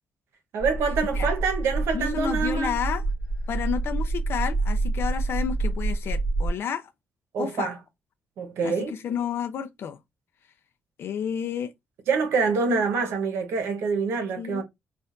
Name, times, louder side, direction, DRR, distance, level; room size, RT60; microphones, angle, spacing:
voice 1, 0.5-2.7 7.3-7.8 8.4-8.9 12.1-14.6, right 5 dB, 85° right, 1.0 m, -26 dB
sound 1, 0.6-6.5, right 2 dB, 10° left, 1.0 m, -27 dB
voice 2, 1.9-3.1 3.5-6.9 7.4-7.7 8.6-10.0 11.0-11.7 12.7-12.8 14.4-14.6, left 8 dB, 65° left, 0.4 m, -31 dB
4.4 x 2.4 x 2.5 m
cardioid pair, 95°, 4 cm